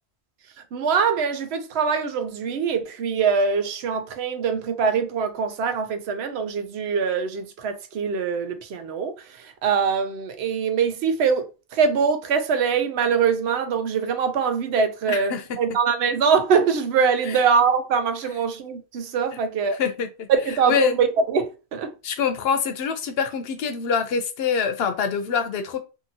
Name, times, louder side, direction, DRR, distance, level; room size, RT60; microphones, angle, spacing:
voice 1, 0.7-19.8 20.3-21.9, right 6 dB, 75° right, 0.8 m, -23 dB
voice 2, 15.1-15.4 19.8-20.3 20.7-20.9 22.0-25.8, left 6 dB, 70° left, 0.8 m, -25 dB
2.8 x 2.7 x 2.6 m
omnidirectional pair, 1.1 m